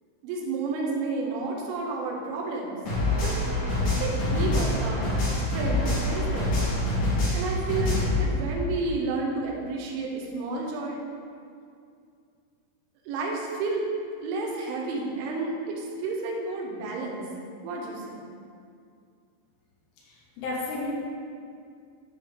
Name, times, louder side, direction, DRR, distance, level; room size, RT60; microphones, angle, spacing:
voice 1, 0.2-2.8 3.2-3.4 4.0-6.6 7.3-11.0 13.1-13.9 14.2-17.2 17.6-18.2, right 3 dB, 80° right, -1 dB, 3.2 m, -31 dB
sound 1, 2.9-8.2, left 1 dB, 60° left, 2.1 m, -25 dB
voice 2, 20.1-20.9, left 3 dB, 80° left, -5 dB, 3.7 m, -33 dB
10.5 x 3.8 x 3.6 m, 2.3 s
omnidirectional pair, 5.6 m